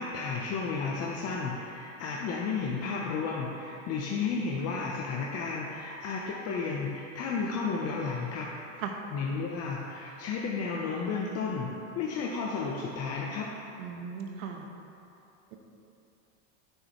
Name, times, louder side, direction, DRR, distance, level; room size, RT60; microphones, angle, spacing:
voice 1, 0.0-8.5 8.7-8.8 9.1-11.7 11.9-13.5, left 4 dB, 40° left, -2 dB, 0.8 m, -32 dB
voice 2, 13.8-14.7, right 6 dB, 75° right, 3 dB, 1.2 m, -37 dB
11.0 x 6.2 x 3.1 m, 2.8 s
supercardioid pair, 125°, 40 cm